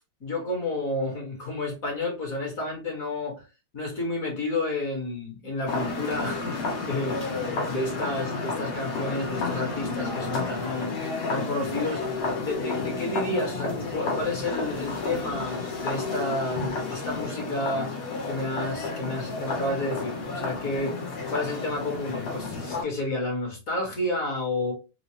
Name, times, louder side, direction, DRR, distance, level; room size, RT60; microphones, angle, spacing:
voice 1, 0.2-3.4 3.7-10.9 11.3-17.9 18.3-21.0 21.3-24.7, left 2 dB, 45° left, 0 dB, 1.4 m, -31 dB
sound 1, 5.7-22.8, left 3 dB, 90° left, 2.4 m, -31 dB
sound 2, 8.9-16.9, left 5 dB, 70° left, 1.6 m, -40 dB
4.7 x 2.0 x 2.8 m, 0.30 s
omnidirectional pair, 2.3 m